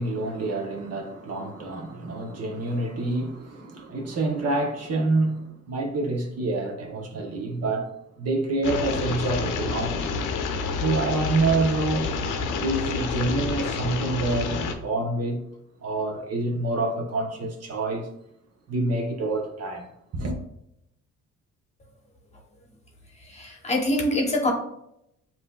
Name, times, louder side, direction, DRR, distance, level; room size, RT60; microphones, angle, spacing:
voice 1, 0.0-7.9 8.2-10.1 10.8-12.1 12.6-15.4 15.8-18.1 18.7-19.9 20.1-20.4, right 2 dB, 55° right, 0.9 m, -27 dB
sound 1, 8.6-14.7, left 4 dB, 85° left, 0.7 m, -29 dB
voice 2, 23.3-24.5, left 1 dB, 20° left, 1.1 m, -24 dB
7.4 x 2.8 x 2.3 m
cardioid pair, 90°, 30 cm